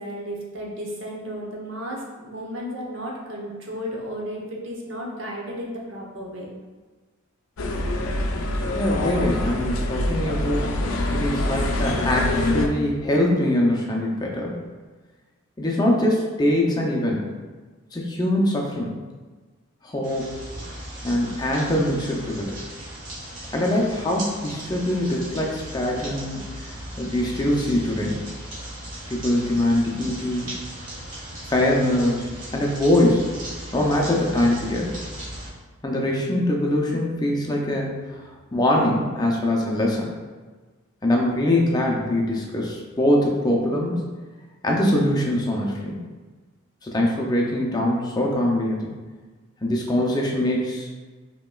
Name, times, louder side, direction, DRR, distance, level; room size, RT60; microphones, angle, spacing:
voice 1, 0.0-6.5, equal, 65° right, -2 dB, 0.8 m, -33 dB
sound 1, 7.6-12.7, left 1 dB, 80° left, 0.5 m, -25 dB
voice 2, 8.7-10.7 11.1-14.6 15.6-17.3 17.9-18.9 19.8-20.4 21.0-22.5 23.5-26.4 27.0-28.2 29.1-30.6 31.5-33.3 33.7-34.9 35.8-37.9 38.5-40.1 41.0-44.0 44.6-46.0 46.8-48.9 49.6-50.9, left 1 dB, 20° left, -1 dB, 0.5 m, -23 dB
sound 2, 20.0-35.5, right 1 dB, 40° right, 1.3 m, -37 dB
5.4 x 2.9 x 2.3 m, 1.3 s
head